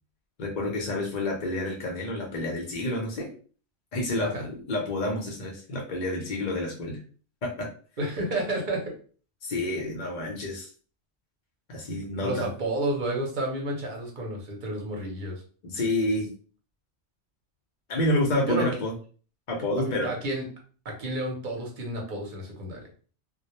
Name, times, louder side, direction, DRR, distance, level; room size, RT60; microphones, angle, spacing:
voice 1, 0.4-3.3 3.9-7.0 7.4-7.7 9.4-10.7 11.7-12.5 15.6-16.3 17.9-18.9 19.5-20.1, left 1 dB, 50° left, -1 dB, 0.6 m, -29 dB
voice 2, 8.0-8.8 12.2-15.4 18.5-18.7 19.8-20.4 20.8-22.9, right 1 dB, 50° right, 0 dB, 0.8 m, -31 dB
2.2 x 2.0 x 2.9 m, 0.41 s
omnidirectional pair, 1.2 m